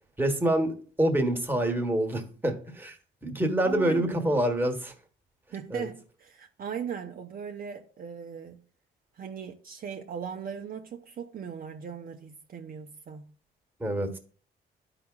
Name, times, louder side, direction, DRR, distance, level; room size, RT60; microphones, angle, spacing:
voice 1, 0.2-3.0 3.2-4.9 5.7-5.9 13.8-14.2, right 1 dB, 10° right, 1.3 m, -26 dB
voice 2, 3.6-4.4 5.5-8.6 9.2-13.3, right 7 dB, 45° right, 0.7 m, -39 dB
11.5 x 4.9 x 2.4 m
cardioid pair, 90°, 20 cm